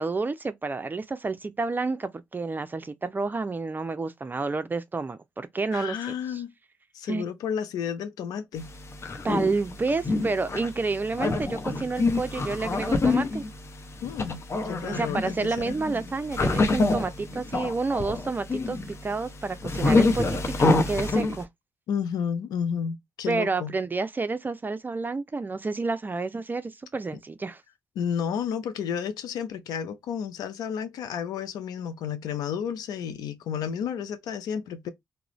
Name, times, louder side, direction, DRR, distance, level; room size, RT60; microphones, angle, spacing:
voice 1, 0.0-6.0 7.1-7.2 9.2-13.4 14.8-21.5 23.3-27.6, right 3 dB, 30° right, 0.4 m, -29 dB
voice 2, 5.7-6.5 6.9-8.7 14.0-15.8 21.9-23.7 28.0-34.9, left 7 dB, 80° left, 0.4 m, -31 dB
sound 1, 8.6-21.4, left 3 dB, 45° left, 0.7 m, -27 dB
2.4 x 2.0 x 2.9 m
supercardioid pair, 50°, 6 cm